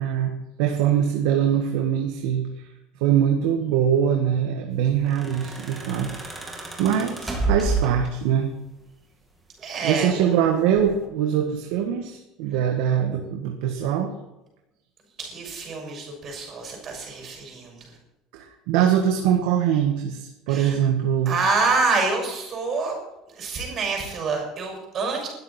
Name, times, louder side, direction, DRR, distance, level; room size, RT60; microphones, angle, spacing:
voice 1, 0.0-2.7 3.0-8.6 9.8-14.1 18.3-21.4, right 9 dB, 70° right, 3 dB, 1.8 m, -23 dB
sound 1, 4.9-8.4 9.6-10.3 10.8-11.1, right 3 dB, 10° right, 2.2 m, -30 dB
voice 2, 9.6-10.3 15.2-17.9 20.5-20.7 21.2-22.9 23.3-25.3, right 4 dB, 25° right, 1 dB, 6.6 m, -27 dB
20.5 x 13.0 x 4.5 m, 0.94 s
cardioid pair, 180°, 0 cm